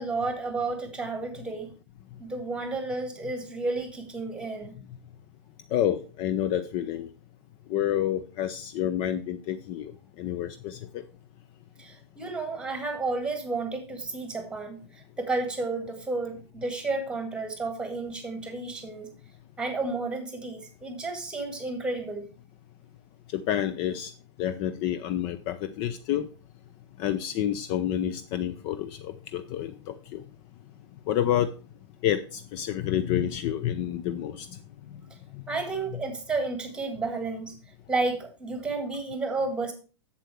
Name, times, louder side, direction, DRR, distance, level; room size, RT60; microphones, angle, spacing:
voice 1, 0.0-1.7 2.2-4.7 11.8-14.8 15.2-19.1 19.6-22.3 35.5-37.5 37.9-39.7, right 3 dB, 5° right, 7 dB, 1.9 m, -31 dB
voice 2, 5.7-7.1 7.7-9.9 10.2-10.8 23.3-24.1 24.4-26.3 27.0-30.2 31.1-31.5 32.0-34.5 35.3-35.4, left 11 dB, 35° left, 10 dB, 0.5 m, -29 dB
7.6 x 7.5 x 4.6 m, 0.35 s
figure-of-eight pair, 100°, 15 cm